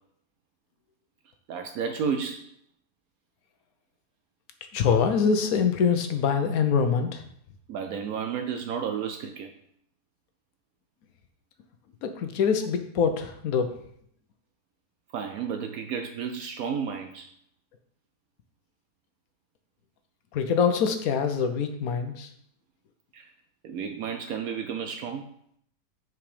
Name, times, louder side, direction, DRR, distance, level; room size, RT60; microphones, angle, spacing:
voice 1, 1.5-2.5 7.7-9.5 15.1-17.3 23.1-23.3 23.6-25.3, right 7 dB, 70° right, 6 dB, 1.0 m, -32 dB
voice 2, 4.7-7.2 12.0-13.7 20.3-22.3, left 6 dB, 65° left, 8 dB, 1.2 m, -24 dB
6.0 x 4.6 x 5.0 m, 0.69 s
omnidirectional pair, 1.7 m